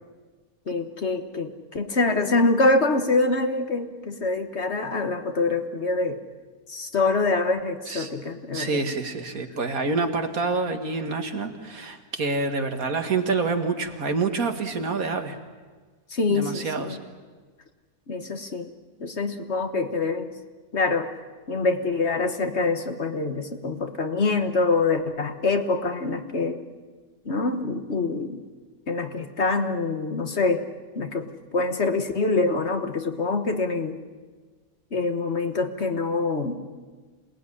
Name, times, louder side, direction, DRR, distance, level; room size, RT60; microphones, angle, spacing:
voice 1, 0.7-6.2 6.7-8.8 16.1-17.0 18.1-18.7 19.0-20.3 20.7-21.1 21.5-26.6 27.2-28.4 28.9-30.6 30.9-34.0 34.9-36.6, left 3 dB, 45° left, 7 dB, 1.5 m, -25 dB
voice 2, 8.5-15.4 16.3-17.0, right 4 dB, 65° right, 6 dB, 2.2 m, -27 dB
27.5 x 19.0 x 10.0 m, 1.4 s
omnidirectional pair, 1.6 m